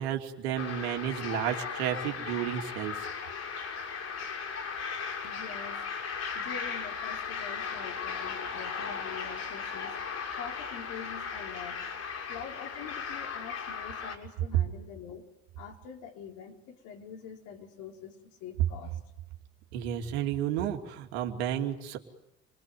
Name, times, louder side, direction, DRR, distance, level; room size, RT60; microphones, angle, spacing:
voice 1, 0.0-3.1 19.7-22.0, right 10 dB, 90° right, 3 dB, 2.9 m, -32 dB
sound 1, 0.6-14.2, left 6 dB, 55° left, 6.6 m, -37 dB
voice 2, 5.2-5.8 6.3-10.0 10.4-11.8 12.3-15.3 15.6-19.0, left 7 dB, 75° left, 2 dB, 4.4 m, -45 dB
29.0 x 21.5 x 9.4 m, 0.86 s
supercardioid pair, 75°, 31 cm